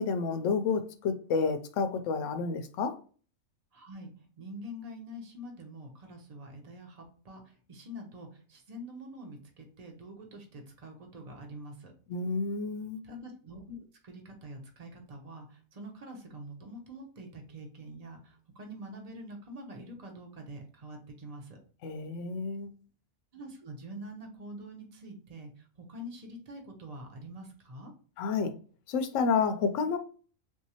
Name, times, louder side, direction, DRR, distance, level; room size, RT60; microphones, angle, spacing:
voice 1, 0.0-3.0 12.1-13.0 21.8-22.7 28.2-28.5 28.9-30.0, left 5 dB, 75° left, 0.9 m, -30 dB
voice 2, 3.7-4.1 4.4-11.9 13.0-21.6 23.3-27.9, equal, 35° right, 0.7 m, -45 dB
3.6 x 2.7 x 2.8 m
omnidirectional pair, 1.4 m